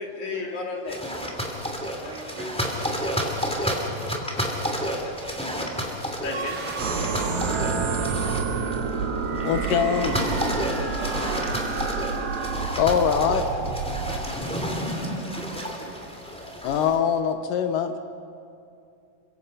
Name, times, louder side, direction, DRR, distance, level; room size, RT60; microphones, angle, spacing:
voice 1, 0.0-2.2 3.9-4.5 5.3-7.6 9.4-9.5 15.2-15.9 16.5-16.7, left 3 dB, 60° left, 0 dB, 3.7 m, -39 dB
sound 1, 0.9-17.0, equal, ahead, 2.3 m, -31 dB
voice 2, 2.0-3.1 7.4-8.2 11.0-11.9 14.5-14.8 15.5-16.0, right 1 dB, 60° right, -1 dB, 4.1 m, -41 dB
sound 2, 6.2-9.2, right 4 dB, 40° right, 1.6 m, -34 dB
sound 3, 6.8-14.2, right 4 dB, 75° right, 3.7 m, -28 dB
voice 3, 9.4-10.2 12.8-13.8 16.6-18.0, left 7 dB, 75° left, 8 dB, 2.5 m, -23 dB
28.5 x 24.5 x 5.5 m, 2.5 s
omnidirectional pair, 4.0 m